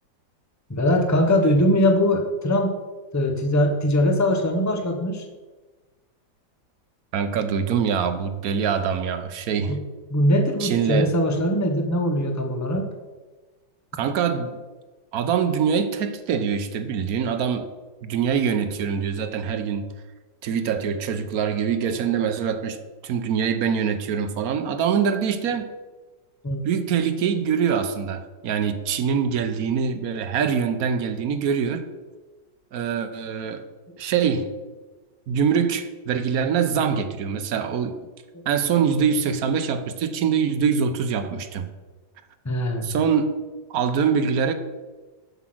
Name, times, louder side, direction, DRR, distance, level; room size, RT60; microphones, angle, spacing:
voice 1, 0.7-2.7 3.1-5.3 9.7-9.8 10.1-12.9 26.4-26.6 42.4-42.9, left 1 dB, 15° left, 4 dB, 0.5 m, -21 dB
voice 2, 7.1-9.8 10.6-11.1 14.0-14.6 15.1-17.7 18.0-19.9 20.4-22.8 23.0-25.7 26.6-31.9 32.7-33.6 34.0-34.5 35.3-37.9 38.5-41.7 42.8-43.3 43.7-44.5, right 7 dB, 65° right, 9 dB, 1.0 m, -24 dB
7.7 x 7.1 x 6.1 m, 1.3 s
omnidirectional pair, 2.0 m